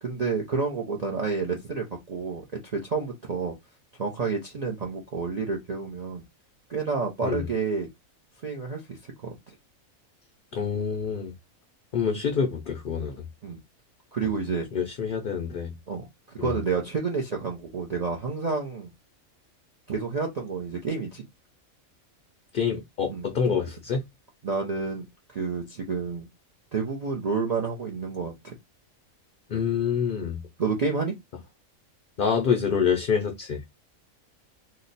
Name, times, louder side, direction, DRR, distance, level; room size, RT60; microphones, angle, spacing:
voice 1, 0.0-3.6 4.0-6.2 6.7-7.9 8.4-9.4 13.4-13.6 14.1-14.7 15.9-18.9 19.9-21.2 23.1-23.6 24.4-26.3 26.7-28.6 30.6-31.1, right 4 dB, 50° right, 0.4 m, -29 dB
voice 2, 10.5-11.3 11.9-13.2 14.7-15.7 16.4-16.6 22.5-24.0 29.5-30.4 32.2-33.6, left 6 dB, 60° left, 0.6 m, -26 dB
2.8 x 2.1 x 3.9 m
omnidirectional pair, 1.4 m